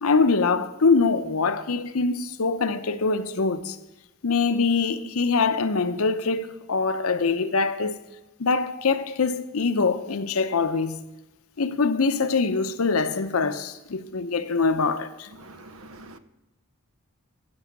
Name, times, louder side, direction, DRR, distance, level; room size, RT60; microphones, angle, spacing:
voice 1, 0.0-3.8 4.2-7.9 8.4-11.0 11.6-15.3, left 4 dB, 75° left, 0.7 m, -23 dB
voice 2, 15.3-16.2, right 2 dB, 75° right, 0.8 m, -45 dB
15.5 x 6.3 x 5.8 m
head